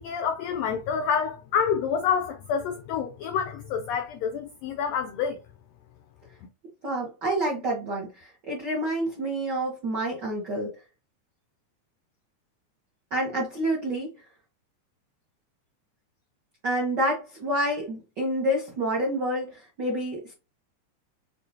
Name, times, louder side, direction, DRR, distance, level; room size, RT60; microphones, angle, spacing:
voice 1, 0.0-5.4, left 7 dB, 90° left, 1.5 m, -28 dB
voice 2, 6.8-10.7 13.1-14.1 16.6-20.3, right 1 dB, 70° right, 1.0 m, -28 dB
6.5 x 2.5 x 2.7 m
omnidirectional pair, 3.5 m